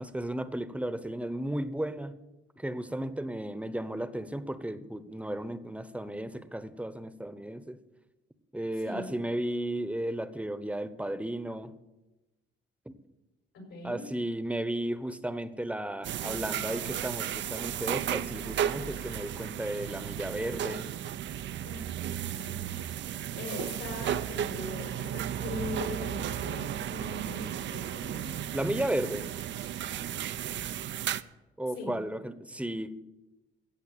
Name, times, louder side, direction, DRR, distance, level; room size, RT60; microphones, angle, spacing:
voice 1, 0.0-2.1 2.6-7.8 8.5-11.7 12.9-13.0 13.8-20.9 28.5-29.3 31.6-32.9, right 1 dB, 5° right, 13 dB, 1.0 m, -34 dB
voice 2, 13.7-14.0 21.6-21.8 22.3-22.7 23.4-28.4 31.8-31.9, left 1 dB, 85° left, 1 dB, 6.5 m, -40 dB
sound 1, 16.0-31.2, right 10 dB, 65° right, 0.6 m, -34 dB
15.0 x 8.2 x 8.4 m, 1.1 s
cardioid pair, 90°, 20 cm